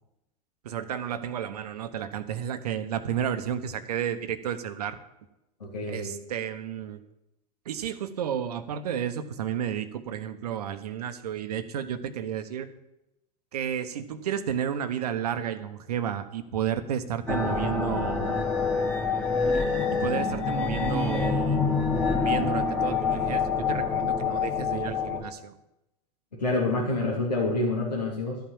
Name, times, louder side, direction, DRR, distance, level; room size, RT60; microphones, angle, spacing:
voice 1, 0.6-5.0 5.9-7.0 7.6-12.7 13.5-18.5 19.9-25.5 26.5-26.6, right 9 dB, 70° right, 11 dB, 1.0 m, -32 dB
voice 2, 5.6-6.1 26.3-28.4, left 2 dB, 85° left, -4 dB, 2.9 m, -27 dB
sound 1, 17.3-25.2, left 4 dB, 5° left, 2.3 m, -26 dB
12.5 x 5.9 x 8.6 m, 0.90 s
figure-of-eight pair, 85°, 21 cm